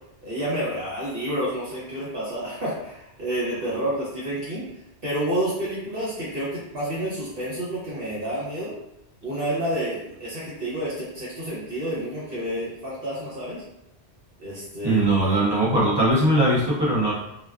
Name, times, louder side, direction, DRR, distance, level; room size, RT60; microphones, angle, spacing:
voice 1, 0.2-4.6 5.0-8.7 9.2-13.6 14.4-15.3, right 1 dB, 60° right, -9 dB, 1.0 m, -29 dB
voice 2, 14.8-17.1, right 1 dB, 35° right, -7 dB, 0.4 m, -20 dB
2.4 x 2.3 x 2.3 m, 0.83 s
omnidirectional pair, 1.1 m